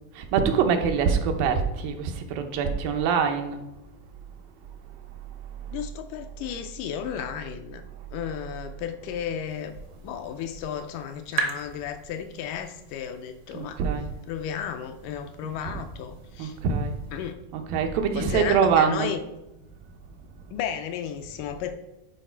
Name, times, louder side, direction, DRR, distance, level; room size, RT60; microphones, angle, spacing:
voice 1, 0.1-3.6 5.6-5.9 7.9-8.1 13.5-14.1 15.4-15.7 16.4-17.0 17.5-19.1, right 6 dB, 85° right, 5 dB, 2.6 m, -24 dB
voice 2, 5.7-7.8 8.1-9.8 10.0-13.8 14.3-16.5 17.1-17.4 18.2-19.2 20.5-21.7, left 9 dB, 80° left, 7 dB, 2.0 m, -33 dB
sound 1, 9.5-17.3, right 5 dB, 70° right, 1.2 m, -39 dB
10.5 x 4.9 x 4.5 m, 0.96 s
omnidirectional pair, 4.0 m